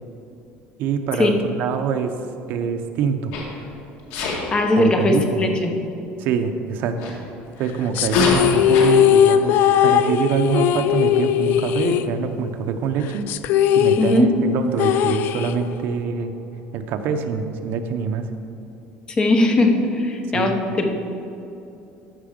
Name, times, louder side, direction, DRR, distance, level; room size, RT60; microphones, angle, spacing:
voice 1, 0.8-2.1 2.5-3.3 4.7-5.4 6.2-7.1 7.6-13.2 13.7-16.3 16.7-18.2 20.3-20.5, right 6 dB, 55° right, 6 dB, 0.8 m, -25 dB
Sneeze, 3.3-3.6 4.1-4.4 7.0-7.1 8.0-8.9, left 3 dB, 75° left, 1.9 m, -24 dB
voice 2, 4.5-5.7 14.0-14.3 19.2-21.0, left 2 dB, 20° left, 4 dB, 1.0 m, -19 dB
sound 1, 8.0-12.6 12.9-13.0 13.3-15.9, left 10 dB, 55° left, 0.3 m, -19 dB
14.0 x 5.8 x 5.2 m, 2.8 s
cardioid pair, 160°, 4 cm